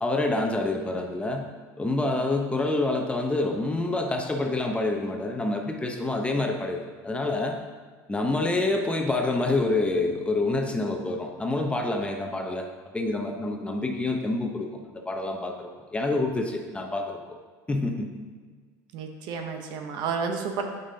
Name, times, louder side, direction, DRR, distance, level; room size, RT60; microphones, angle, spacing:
voice 1, 0.0-1.5 1.8-7.5 8.1-12.7 12.9-17.4 17.7-18.1, left 2 dB, 15° left, 3 dB, 0.8 m, -27 dB
voice 2, 18.9-20.6, right 5 dB, 65° right, 4 dB, 0.9 m, -31 dB
8.3 x 5.4 x 2.8 m, 1.5 s
supercardioid pair, 100°, 8 cm